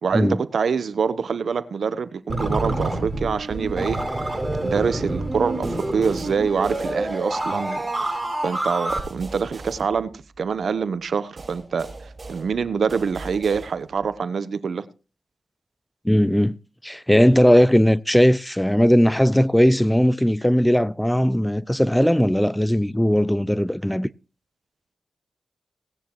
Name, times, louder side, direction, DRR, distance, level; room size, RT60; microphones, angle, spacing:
voice 1, 0.0-4.0 4.6-11.9 12.3-14.9, right 6 dB, 70° right, 0.9 m, -25 dB
sound 1, 2.3-9.0, right 2 dB, 15° right, 7.5 m, -27 dB
sound 2, 5.6-7.6 8.9-10.6 11.4-14.1, right 3 dB, 40° right, 7.0 m, -41 dB
voice 2, 16.0-16.6 16.8-24.1, equal, 5° left, 0.5 m, -18 dB
18.0 x 10.0 x 3.1 m
cardioid pair, 55°, 0 cm